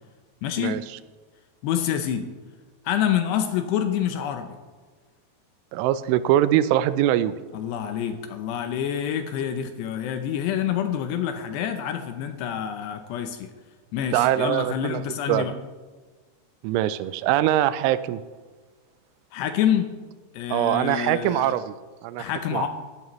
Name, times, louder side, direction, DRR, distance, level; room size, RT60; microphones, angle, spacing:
voice 1, 0.4-0.8 1.6-2.3 2.9-4.5 7.5-13.5 13.9-15.5 19.3-19.9 20.3-21.6 22.2-22.7, left 9 dB, 80° left, 6 dB, 2.6 m, -27 dB
voice 2, 5.7-7.3 14.1-15.0 15.3-15.5 16.6-18.2 20.5-21.7 22.0-22.6, right 12 dB, 90° right, 15 dB, 3.0 m, -22 dB
16.5 x 11.0 x 3.1 m, 1.4 s
omnidirectional pair, 5.4 m